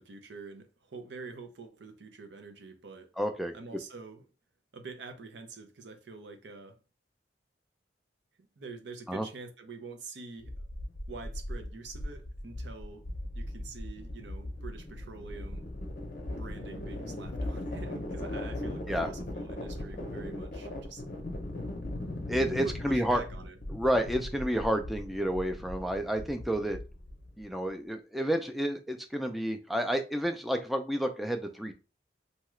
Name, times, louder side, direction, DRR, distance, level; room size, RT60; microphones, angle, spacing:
voice 1, 0.0-3.1 3.5-4.2 4.7-6.8 8.4-10.6 11.1-13.1 13.3-15.7 16.3-21.0 22.6-23.6, right 4 dB, 75° right, 0.6 m, -46 dB
voice 2, 3.2-3.8 9.1-9.3 18.9-19.1 22.3-23.2 23.7-26.8 27.4-31.7, equal, ahead, 0.4 m, -30 dB
sound 1, 10.4-27.4, left 1 dB, 45° left, 0.6 m, -39 dB
2.8 x 2.3 x 3.1 m
head